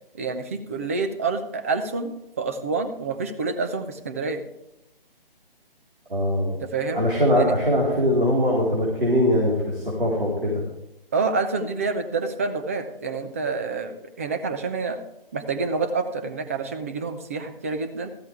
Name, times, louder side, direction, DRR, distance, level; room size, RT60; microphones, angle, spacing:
voice 1, 0.2-4.4 6.6-7.0 7.4-7.5 11.1-15.0 15.3-18.1, right 4 dB, 15° right, 8 dB, 0.6 m, -28 dB
voice 2, 6.1-6.5 6.9-10.6, equal, 65° right, -4 dB, 4.1 m, -21 dB
14.0 x 13.0 x 3.4 m, 0.87 s
figure-of-eight pair, 140°, 29 cm